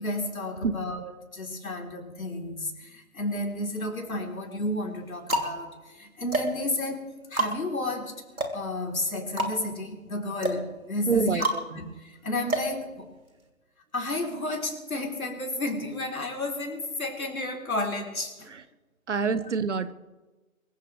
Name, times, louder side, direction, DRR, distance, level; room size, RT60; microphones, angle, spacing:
voice 1, 0.0-8.2 8.5-13.1 13.9-18.5, left 1 dB, 80° left, 3 dB, 3.7 m, -32 dB
sound 1, 3.3-4.1 4.7-13.5, right 1 dB, 90° right, 3.0 m, -32 dB
voice 2, 11.1-11.6 18.5-18.6 19.1-19.9, right 5 dB, 55° right, 14 dB, 1.2 m, -26 dB
23.5 x 15.5 x 3.3 m, 1.2 s
figure-of-eight pair, 150°, 42 cm